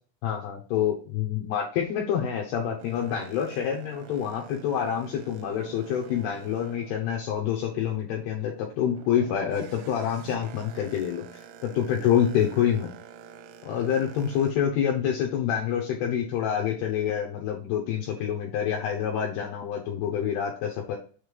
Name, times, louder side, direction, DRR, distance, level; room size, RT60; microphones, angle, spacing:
voice 1, 0.2-11.2 11.6-12.9 13.6-21.0, left 9 dB, 80° left, 0 dB, 2.3 m, -27 dB
Boat Water vehicle, 2.8-7.8 8.2-14.5, right 8 dB, 85° right, 3.1 m, -47 dB
7.3 x 3.2 x 5.2 m, 0.42 s
omnidirectional pair, 5.6 m